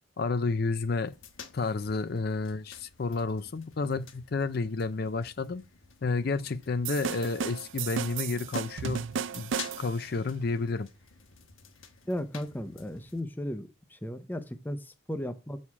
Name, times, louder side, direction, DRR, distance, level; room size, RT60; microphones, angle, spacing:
voice 1, 0.2-1.1 1.5-5.6 6.0-9.0 9.3-9.5 9.8-10.9, left 3 dB, 50° left, 0.5 m, -30 dB
sound 1, 1.0-13.2, left 6 dB, 80° left, 1.3 m, -50 dB
sound 2, 6.8-10.1, right 6 dB, 70° right, 0.5 m, -34 dB
voice 2, 12.1-15.6, left 1 dB, 10° left, 0.6 m, -36 dB
7.3 x 6.4 x 4.7 m
head